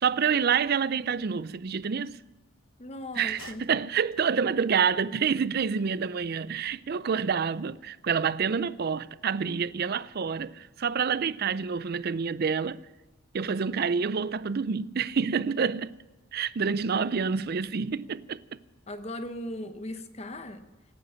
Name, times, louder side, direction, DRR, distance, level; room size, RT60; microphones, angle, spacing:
voice 1, 0.0-2.2 3.2-12.8 13.3-16.0 16.3-18.4, right 6 dB, 45° right, 0.4 m, -28 dB
voice 2, 2.8-3.7 18.9-20.7, left 1 dB, 30° left, 0.9 m, -38 dB
sound 1, 3.1-4.5, left 6 dB, 70° left, 1.0 m, -51 dB
17.5 x 10.0 x 7.5 m
head